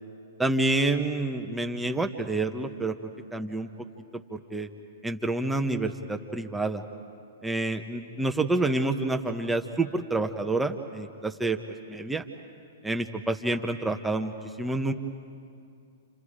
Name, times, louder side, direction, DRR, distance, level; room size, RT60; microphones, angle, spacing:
voice 1, 0.4-3.7 4.1-4.7 5.0-6.8 7.4-11.6 11.9-12.2 12.8-14.9, right 2 dB, 5° right, 4 dB, 1.0 m, -28 dB
29.0 x 28.0 x 5.0 m, 2.4 s
hypercardioid pair, 115°, 0 cm